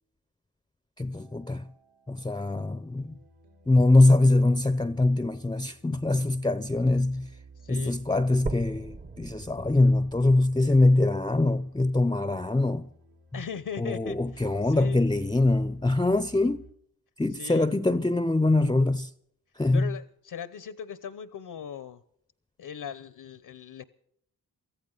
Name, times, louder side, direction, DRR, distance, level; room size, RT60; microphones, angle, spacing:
voice 1, 1.0-1.7 2.1-3.2 3.7-7.3 7.7-12.9 13.3-13.4 13.8-16.6 17.2-19.1 19.6-19.9, left 2 dB, 10° left, 0.7 m, -23 dB
sound 1, 1.1-16.7, right 4 dB, 80° right, 3.1 m, -53 dB
voice 2, 7.6-8.0 13.3-15.0 17.3-17.7 19.7-22.0 22.6-23.8, left 7 dB, 70° left, 1.0 m, -39 dB
sound 2, 8.5-12.5 13.0-13.1 13.7-13.8 14.1-14.2 15.0-15.1, right 3 dB, 25° right, 0.9 m, -41 dB
24.0 x 14.5 x 4.0 m
cardioid pair, 65°, 39 cm